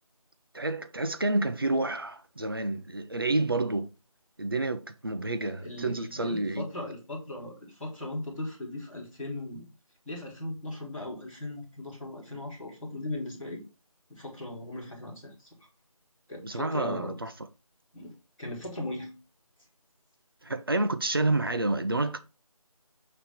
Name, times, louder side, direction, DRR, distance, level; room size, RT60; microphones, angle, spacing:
voice 1, 0.5-3.9 4.4-6.6 16.4-17.3 20.4-22.2, right 2 dB, 40° right, 0.7 m, -29 dB
voice 2, 5.4-9.7 10.0-13.6 14.1-15.7 16.3-17.1 17.9-19.1, left 1 dB, ahead, 1.3 m, -38 dB
9.0 x 3.2 x 5.8 m
figure-of-eight pair, 170°, 19 cm